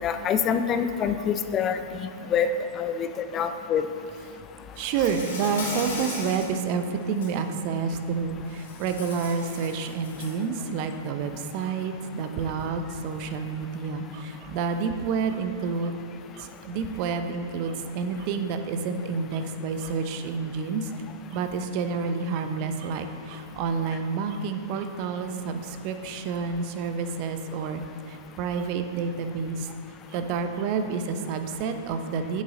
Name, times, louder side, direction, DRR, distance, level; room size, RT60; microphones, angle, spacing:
voice 1, 0.0-1.8 2.3-2.5 2.8-3.1 3.3-3.8, left 8 dB, 30° left, 9 dB, 0.4 m, -25 dB
Insect, 4.8-6.5 7.0-7.3 8.5-10.4, left 3 dB, 70° left, 1.6 m, -37 dB
voice 2, 4.8-16.1 16.3-20.9 21.3-29.7 30.1-32.4, right 5 dB, 45° right, 7 dB, 0.6 m, -29 dB
7.7 x 7.2 x 3.8 m, 2.6 s
hypercardioid pair, 105°, 0 cm